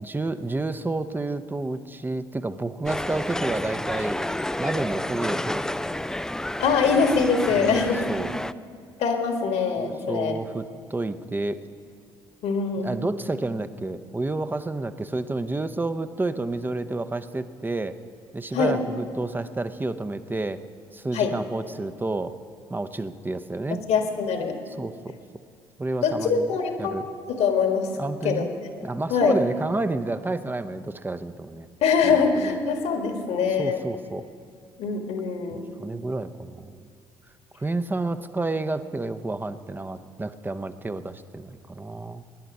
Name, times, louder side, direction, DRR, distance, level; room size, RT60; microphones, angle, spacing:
voice 1, 0.0-4.2 4.6-6.0 7.6-8.3 9.8-11.6 12.8-18.0 18.3-20.6 20.9-22.4 22.7-23.8 24.8-25.1 25.8-26.5 26.8-27.0 28.0-28.5 28.8-31.7 32.0-32.6 33.6-34.3 35.5-36.9 37.5-42.2, right 2 dB, 15° right, 10 dB, 0.8 m, -30 dB
sound 1, 2.9-8.5, left 1 dB, 5° left, 0.3 m, -30 dB
voice 2, 6.6-8.0 9.0-10.3 12.4-12.9 18.5-18.8 21.1-21.3 23.9-24.5 26.0-27.0 27.3-27.9 28.2-28.5 29.1-29.4 31.8-33.8 34.8-35.7, left 5 dB, 65° left, 5 dB, 1.7 m, -23 dB
21.0 x 10.0 x 5.4 m, 2.3 s
hypercardioid pair, 55°, 12 cm